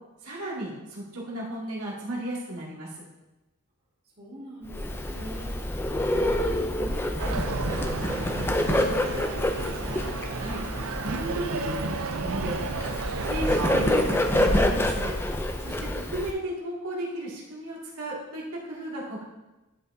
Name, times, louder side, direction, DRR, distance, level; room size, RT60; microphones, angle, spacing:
voice 1, 0.2-3.0 10.4-10.6 11.0-12.6 13.3-15.1 15.6-19.2, right 1 dB, 85° right, -5 dB, 2.2 m, -34 dB
voice 2, 4.2-10.1, equal, 45° right, -5 dB, 2.3 m, -42 dB
Bird, 4.7-16.3, left 1 dB, 10° left, 0.4 m, -27 dB
sound 1, 5.9-12.1, equal, 5° right, 1.7 m, -41 dB
sound 2, 7.2-14.6, right 4 dB, 65° right, 0.5 m, -33 dB
11.0 x 5.6 x 2.7 m, 1.1 s
head